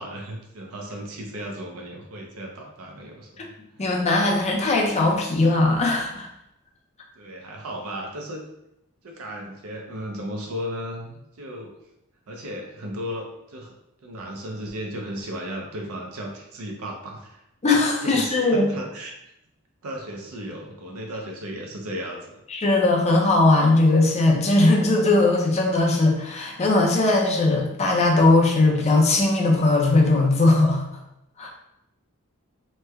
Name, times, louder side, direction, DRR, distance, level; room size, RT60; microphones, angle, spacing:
voice 1, 0.0-3.9 7.2-8.4 9.0-11.7 12.3-13.7 14.0-17.4 18.0-19.1 19.8-22.4, equal, 80° right, 1 dB, 0.5 m, -35 dB
voice 2, 3.8-6.3 17.6-18.7 22.5-30.8 31.4-31.5, left 2 dB, 30° left, 0 dB, 0.5 m, -19 dB
3.1 x 2.1 x 3.4 m, 0.84 s
head